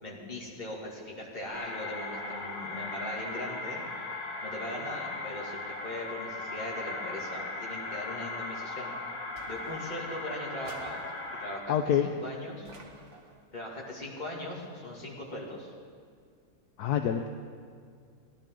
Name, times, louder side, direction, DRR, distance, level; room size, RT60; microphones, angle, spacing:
voice 1, 0.0-3.9 4.4-8.9 9.5-11.0 11.3-11.7 12.0-12.7 13.5-15.7, left 1 dB, 25° left, -4 dB, 2.4 m, -39 dB
sound 1, 1.5-11.6, left 2 dB, 55° left, 2.3 m, -38 dB
sound 2, 9.4-10.1 10.6-11.5 12.6-13.5, right 2 dB, 45° right, 1.6 m, -53 dB
voice 2, 11.7-12.1 16.8-17.3, left 9 dB, 75° left, 6 dB, 1.1 m, -26 dB
17.5 x 11.5 x 3.8 m, 2.1 s
omnidirectional pair, 1.8 m